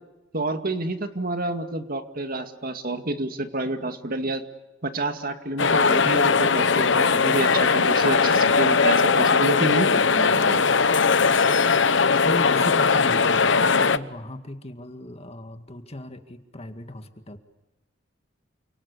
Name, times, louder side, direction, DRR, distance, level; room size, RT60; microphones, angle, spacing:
voice 1, 0.3-4.4 4.8-10.6, right 2 dB, 50° right, 7 dB, 2.2 m, -29 dB
sound 1, 5.6-14.0, left 5 dB, 70° left, 1.0 m, -19 dB
voice 2, 12.3-17.4, left 1 dB, 35° left, 7 dB, 2.0 m, -36 dB
29.5 x 27.0 x 6.9 m, 1.0 s
head